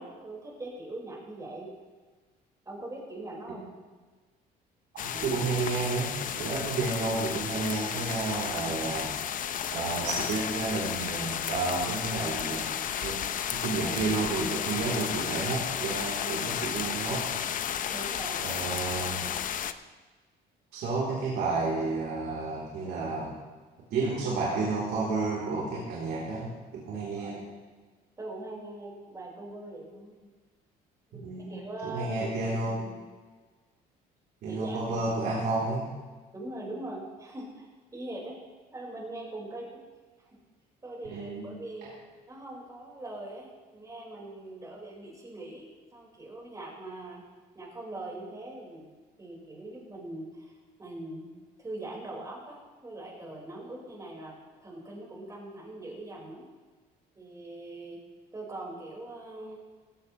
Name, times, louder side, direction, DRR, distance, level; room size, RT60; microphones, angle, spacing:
voice 1, 0.0-1.7 2.7-3.7 17.9-18.6 27.1-27.4 28.2-30.3 31.1-32.3 32.6-33.0 34.5-35.4 36.3-37.7 37.9-38.4 38.7-39.8 40.2-40.3 40.8-41.9 42.3-47.2 47.5-48.9 49.2-50.5 50.8-51.3 51.6-54.3 54.6-56.5 57.2-58.0 58.3-59.6, right 2 dB, 20° right, -3 dB, 5.3 m, -41 dB
voice 2, 4.9-9.1 9.7-12.7 13.0-17.4 18.4-19.3 20.7-23.4 23.9-27.4 31.2-31.5 31.8-32.8 34.4-35.9 41.1-41.6, right 3 dB, 75° right, -6 dB, 3.9 m, -31 dB
sound 1, 5.0-19.7, left 9 dB, 50° left, 0.7 m, -33 dB
17.0 x 15.5 x 3.3 m, 1.4 s
cardioid pair, 110°, 17 cm